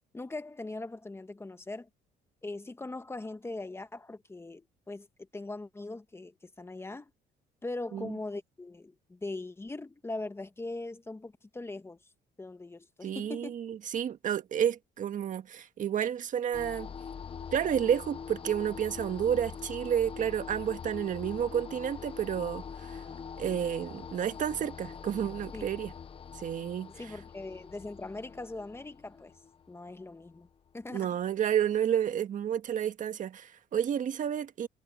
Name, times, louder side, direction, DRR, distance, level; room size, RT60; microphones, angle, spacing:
voice 1, 0.1-1.9 2.4-5.1 5.3-7.1 7.6-12.0 12.4-13.5 25.5-25.6 27.0-29.3 29.7-30.5 30.7-31.1, left 2 dB, 15° left, 1.4 m, -40 dB
voice 2, 13.0-16.9 17.5-23.0 23.4-25.9 26.3-27.2 30.9-34.7, right 9 dB, 50° right, 1.7 m, -31 dB
sound 1, 16.5-30.7, left 6 dB, 35° left, 1.0 m, -44 dB
cardioid pair, 110°, 17 cm